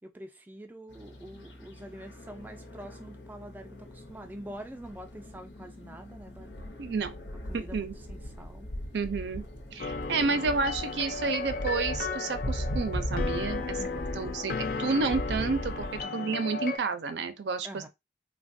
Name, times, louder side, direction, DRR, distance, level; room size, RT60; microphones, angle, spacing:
voice 1, 0.0-6.6 7.3-8.7 10.3-10.7 13.8-14.3 16.0-16.4 17.6-17.9, right 1 dB, 10° right, 0.3 m, -46 dB
sound 1, 0.9-16.1, equal, 90° left, 0.7 m, -39 dB
voice 2, 6.8-7.1 7.5-7.9 8.9-9.4 9.7-13.8 14.2-17.9, right 4 dB, 75° right, 0.5 m, -30 dB
sound 2, 9.8-16.8, left 4 dB, 55° left, 0.4 m, -35 dB
3.3 x 2.1 x 2.5 m
head